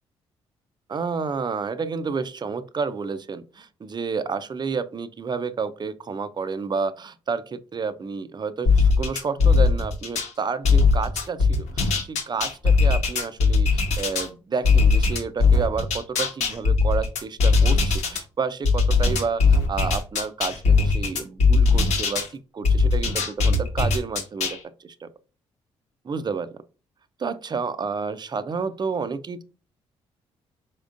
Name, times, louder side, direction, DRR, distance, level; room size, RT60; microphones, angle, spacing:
voice 1, 0.9-25.1 26.0-26.5 27.2-29.4, right 5 dB, 35° right, 0.6 m, -30 dB
sound 1, 8.7-10.3 10.6-14.3 14.6-18.2 18.6-22.3 22.6-24.6, left 4 dB, 75° left, 1.2 m, -19 dB
4.5 x 3.6 x 2.5 m
supercardioid pair, 60°, 12 cm